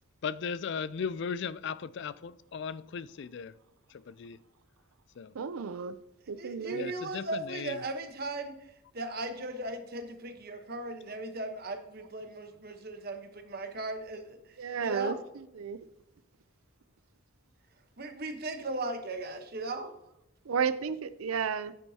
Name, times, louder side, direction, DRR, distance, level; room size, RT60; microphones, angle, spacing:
voice 1, 0.2-3.5 3.9-4.4 5.2-5.3 6.7-7.8, left 6 dB, 55° left, 0.3 m, -37 dB
voice 2, 5.4-5.9 6.3-6.9 14.6-15.2 15.5-15.8 20.4-21.7, right 6 dB, 85° right, 0.5 m, -32 dB
voice 3, 6.4-15.2 18.0-20.0, right 2 dB, 45° right, 1.1 m, -37 dB
9.8 x 9.1 x 2.8 m
head